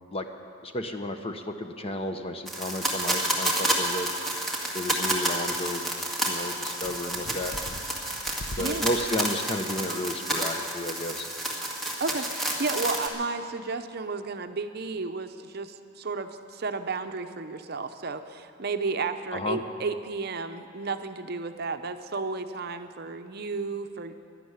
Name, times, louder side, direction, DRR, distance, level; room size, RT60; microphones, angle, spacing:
voice 1, 0.6-4.1 4.7-5.9 6.2-7.5 8.6-11.3 19.3-19.6, left 1 dB, 30° left, 6 dB, 0.9 m, -32 dB
sound 1, 2.5-13.1, right 1 dB, ahead, 2.0 m, -30 dB
sound 2, 6.7-9.1, left 1 dB, 60° left, 0.9 m, -42 dB
voice 2, 8.6-8.9 12.0-24.1, right 4 dB, 50° right, 8 dB, 0.7 m, -33 dB
12.0 x 11.5 x 9.5 m, 2.4 s
head